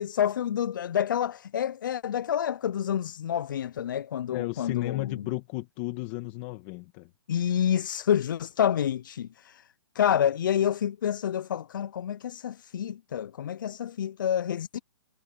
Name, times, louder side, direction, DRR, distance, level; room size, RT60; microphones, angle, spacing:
voice 1, 0.0-5.3 7.3-9.7 9.9-14.8, left 9 dB, 50° left, 0.4 m, -28 dB
voice 2, 4.3-7.1, left 20 dB, 25° left, 2.1 m, -34 dB
hypercardioid pair, 165°, 14 cm